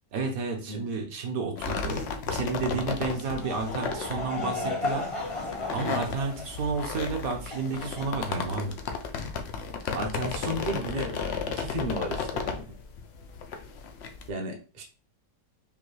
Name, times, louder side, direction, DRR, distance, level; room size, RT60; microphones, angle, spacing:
voice 1, 0.1-2.0 2.3-5.1 5.7-8.7, right 4 dB, 60° right, 3 dB, 1.2 m, -31 dB
sound 1, 1.6-14.3, left 5 dB, 90° left, 0.5 m, -34 dB
Laughter / Crowd, 2.9-8.7, left 3 dB, 30° left, 0.6 m, -35 dB
voice 2, 9.9-12.7 14.3-14.8, right 1 dB, 45° right, 1 dB, 0.6 m, -34 dB
5.4 x 2.3 x 3.2 m, 0.35 s
omnidirectional pair, 1.8 m